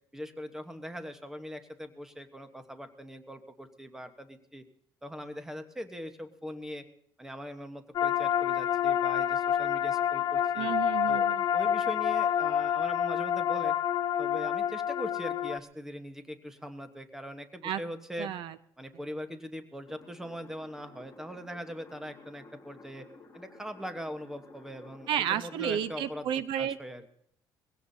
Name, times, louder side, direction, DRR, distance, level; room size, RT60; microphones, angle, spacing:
voice 1, 0.1-4.6 5.0-6.8 7.2-10.7 11.1-13.8 14.2-18.3 18.8-23.0 23.3-26.3 26.6-27.0, equal, 5° right, 7 dB, 1.1 m, -41 dB
sound 1, 7.9-15.6, left 9 dB, 45° left, 0.7 m, -28 dB
voice 2, 10.6-11.4 17.6-17.8 18.2-18.6 25.1-26.8, right 10 dB, 70° right, 15 dB, 0.6 m, -31 dB
sound 2, 19.9-26.1, left 3 dB, 25° left, 5.2 m, -54 dB
22.0 x 16.5 x 2.7 m, 0.71 s
cardioid pair, 145°, 9 cm